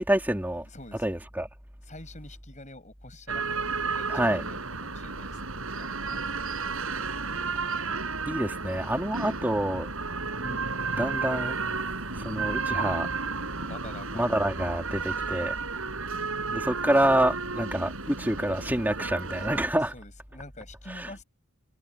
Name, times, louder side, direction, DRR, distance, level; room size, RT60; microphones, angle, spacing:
voice 1, 0.0-0.6 1.0-1.5 4.1-4.4 8.3-9.9 10.4-10.6 11.0-11.5 12.2-13.1 14.1-15.5 16.5-19.9 21.0-21.1, right 1 dB, 10° right, 2.5 m, -27 dB
voice 2, 0.6-1.1 1.8-6.2 13.6-14.4 19.3-21.2, left 2 dB, 35° left, 7.0 m, -47 dB
sound 1, 3.3-19.6, right 4 dB, 65° right, 5.5 m, -32 dB
head